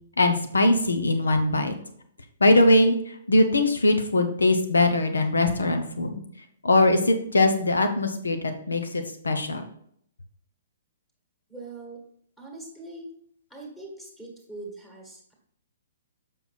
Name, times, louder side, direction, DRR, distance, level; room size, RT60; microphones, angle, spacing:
voice 1, 0.2-1.7 2.4-6.2 6.6-9.6, left 2 dB, 70° left, 7 dB, 1.1 m, -21 dB
voice 2, 11.5-12.0 12.4-13.1 13.5-15.3, right 2 dB, 10° left, -2 dB, 1.9 m, -42 dB
7.2 x 5.6 x 4.3 m, 0.65 s
figure-of-eight pair, 120°, 0 cm